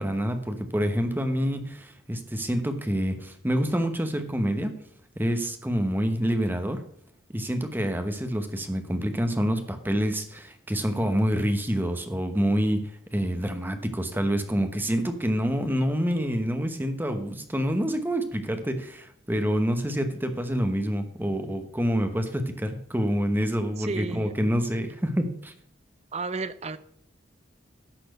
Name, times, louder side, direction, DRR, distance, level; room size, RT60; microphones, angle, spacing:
voice 1, 0.0-4.7 5.1-6.8 7.3-25.5, equal, 10° right, 7 dB, 1.0 m, -27 dB
voice 2, 23.8-24.3 26.1-26.8, right 3 dB, 35° right, 13 dB, 0.6 m, -32 dB
12.0 x 4.3 x 7.9 m, 0.64 s
head